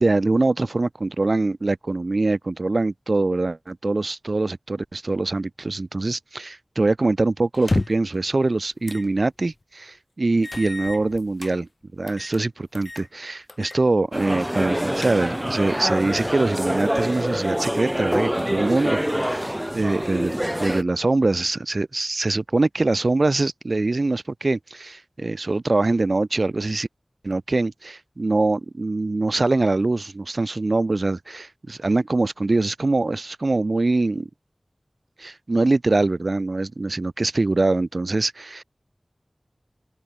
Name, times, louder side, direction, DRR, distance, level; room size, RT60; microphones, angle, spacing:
voice 1, 0.0-26.9 27.2-34.3 35.2-38.6, right 2 dB, 65° right, 1.2 m, -23 dB
sound 1, 7.5-8.2 8.8-9.1 9.5-9.6 10.4-11.5 12.1-12.4 12.7-13.1 13.5-13.8 14.1-14.2 14.7-15.5, left 2 dB, 55° left, 3.7 m, -30 dB
sound 2, 14.1-20.8, equal, 10° right, 4.2 m, -25 dB
wide cardioid pair, 50°, 0 cm